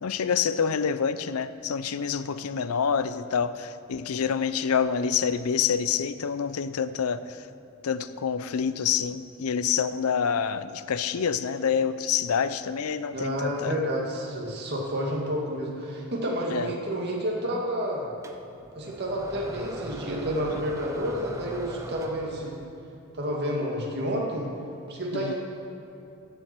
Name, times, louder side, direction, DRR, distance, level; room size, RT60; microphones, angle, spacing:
voice 1, 0.0-7.5 7.8-13.8 16.5-16.7 25.1-25.3, left 7 dB, 85° left, 13 dB, 0.5 m, -27 dB
voice 2, 13.1-18.1 18.7-22.6 23.1-24.5 24.9-25.3, equal, 50° right, -2 dB, 2.0 m, -30 dB
sound 1, 18.2-22.7, equal, 15° right, 0.6 m, -40 dB
15.5 x 7.7 x 4.5 m, 2.8 s
head